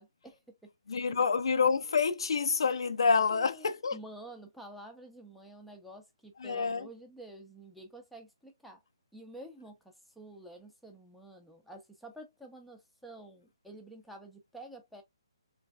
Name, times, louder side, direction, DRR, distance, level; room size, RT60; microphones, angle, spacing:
voice 1, 0.0-1.3 3.3-8.8 9.1-15.0, right 1 dB, ahead, 0.7 m, -50 dB
voice 2, 0.9-4.0 6.4-6.9, left 5 dB, 70° left, 0.5 m, -27 dB
3.3 x 3.2 x 2.3 m
hypercardioid pair, 145°, 3 cm